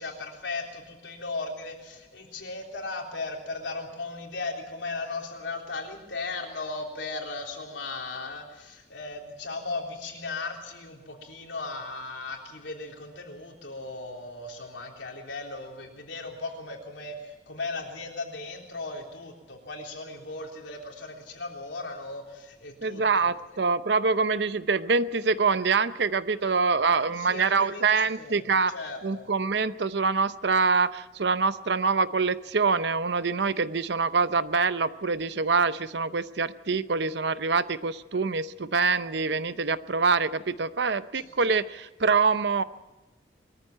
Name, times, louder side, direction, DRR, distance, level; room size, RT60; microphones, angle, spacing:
voice 1, 0.0-23.6 27.0-29.3 41.1-41.3, left 3 dB, 80° left, 1 dB, 3.6 m, -37 dB
voice 2, 22.8-28.7 29.0-42.6, right 4 dB, 70° right, 14 dB, 0.7 m, -25 dB
22.5 x 14.0 x 8.9 m, 1.1 s
head